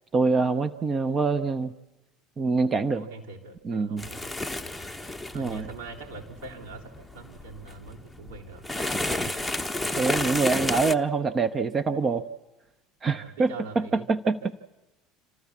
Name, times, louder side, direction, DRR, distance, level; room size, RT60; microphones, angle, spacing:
voice 1, 0.1-1.7 2.4-3.1 3.6-4.1 5.3-5.7 9.3-9.4 10.0-12.2 13.0-14.5, right 4 dB, 30° right, 13 dB, 0.7 m, -25 dB
voice 2, 2.9-4.5 5.3-8.6 9.1-9.4 13.1-14.1, right 3 dB, 75° right, -4 dB, 3.8 m, -43 dB
sound 1, 4.0-10.9, left 1 dB, 5° left, 0.9 m, -32 dB
27.5 x 13.5 x 7.3 m, 1.1 s
figure-of-eight pair, 70°, 0 cm